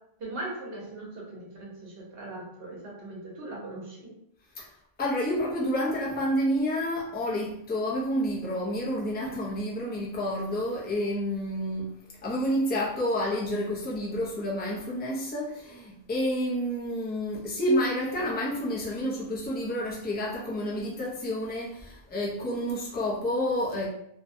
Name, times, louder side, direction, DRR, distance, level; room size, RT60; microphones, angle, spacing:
voice 1, 0.2-4.1, right 2 dB, 70° right, -3 dB, 1.0 m, -39 dB
voice 2, 5.0-12.0 12.2-23.9, equal, 15° left, -4 dB, 0.4 m, -29 dB
2.6 x 2.1 x 2.6 m, 0.73 s
omnidirectional pair, 1.0 m